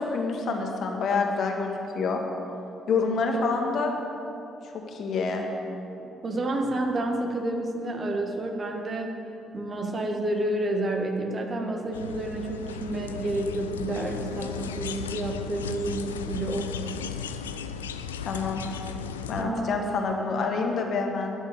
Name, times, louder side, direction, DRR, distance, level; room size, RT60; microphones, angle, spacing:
voice 1, 0.1-2.2 2.9-3.9 4.6-5.4 18.2-18.6 19.3-21.3, left 4 dB, 55° left, 2 dB, 1.6 m, -27 dB
voice 2, 6.0-9.1 9.5-16.7 17.0-17.1 19.4-20.1, right 1 dB, 40° right, 3 dB, 1.7 m, -30 dB
sound 1, 11.9-19.4, left 6 dB, 85° left, 0.4 m, -36 dB
12.0 x 7.3 x 8.6 m, 2.8 s
hypercardioid pair, 45°, 0 cm